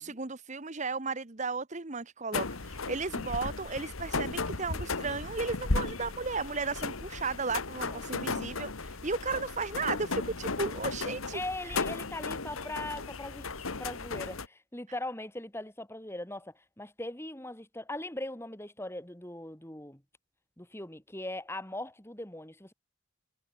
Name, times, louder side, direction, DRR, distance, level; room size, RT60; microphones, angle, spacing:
voice 1, 0.0-11.8, right 4 dB, 35° right, 1.2 m, -35 dB
sound 1, 2.3-14.5, left 3 dB, 90° left, 1.7 m, -35 dB
voice 2, 11.3-13.5 13.8-20.0 20.6-22.7, left 1 dB, 10° left, 2.5 m, -40 dB
head